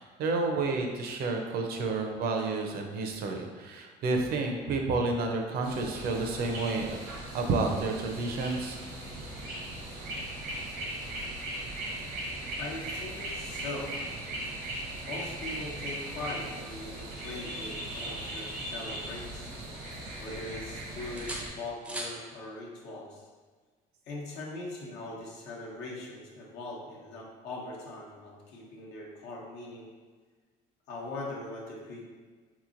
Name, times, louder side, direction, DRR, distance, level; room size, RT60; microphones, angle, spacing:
voice 1, 0.0-7.0 7.3-8.8, right 3 dB, 65° right, 3 dB, 0.5 m, -30 dB
sound 1, 5.6-21.5, right 1 dB, 85° right, 0.9 m, -38 dB
voice 2, 12.6-14.0 15.1-19.5 20.2-23.2 24.1-29.9 30.9-32.0, left 2 dB, 80° left, -4 dB, 0.9 m, -41 dB
sound 2, 18.5-19.6 19.9-20.7 21.2-22.2 24.1-24.3, right 1 dB, 5° right, 0.4 m, -43 dB
3.7 x 3.0 x 2.5 m, 1.4 s
cardioid pair, 110°, 17 cm